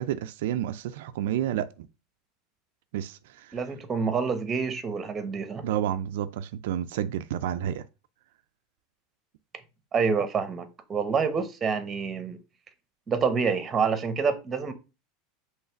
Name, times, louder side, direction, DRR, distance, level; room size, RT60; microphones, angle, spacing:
voice 1, 0.0-1.9 2.9-3.5 5.6-7.8, right 11 dB, 80° right, 0.4 m, -30 dB
voice 2, 3.5-5.6 9.9-12.4 13.1-14.7, right 5 dB, 25° right, 1.0 m, -27 dB
5.6 x 3.2 x 5.7 m
supercardioid pair, 130°, 0 cm